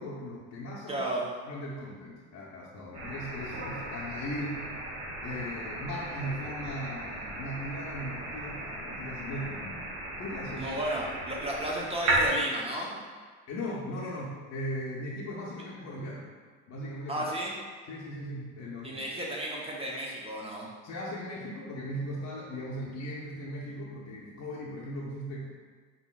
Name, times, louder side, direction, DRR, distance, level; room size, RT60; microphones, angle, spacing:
voice 1, 0.0-1.0 1.4-4.7 5.2-9.8 10.2-10.7 13.5-16.3 16.7-17.2 17.9-19.0 20.8-25.5, equal, 50° left, -5 dB, 0.7 m, -38 dB
voice 2, 0.9-1.3 10.5-13.0 17.1-17.6 18.8-20.7, right 1 dB, 15° right, -3 dB, 0.9 m, -33 dB
sound 1, 2.9-12.3, right 2 dB, 85° right, 0.9 m, -35 dB
3.9 x 3.7 x 2.4 m, 1.5 s
supercardioid pair, 75°, 33 cm